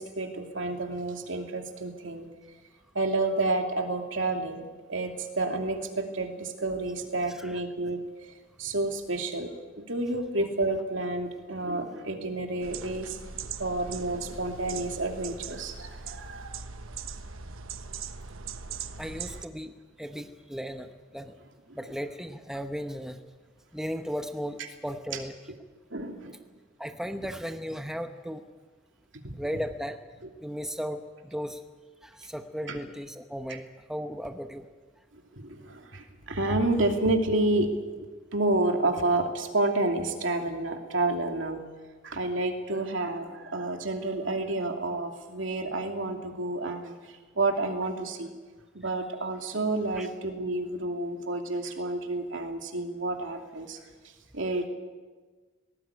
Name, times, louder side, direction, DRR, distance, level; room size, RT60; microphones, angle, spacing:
voice 1, 0.0-2.3 2.9-4.6 4.9-8.0 8.6-9.5 9.8-13.1 13.6-16.6 25.9-26.3 29.2-29.4 32.7-32.8 33.5-33.6 35.4-37.7 38.3-41.6 42.0-46.9 47.4-48.3 48.7-53.8 54.3-54.7, right 2 dB, 70° right, 4 dB, 2.8 m, -29 dB
sound 1, 12.6-19.5, right 6 dB, 85° right, 1.1 m, -40 dB
voice 2, 19.0-21.3 21.7-23.2 23.7-25.3 26.8-28.4 29.3-30.0 30.4-31.6 32.0-33.6 33.9-34.7 49.9-50.1, equal, ahead, 6 dB, 0.9 m, -36 dB
19.5 x 18.5 x 9.7 m, 1.4 s
head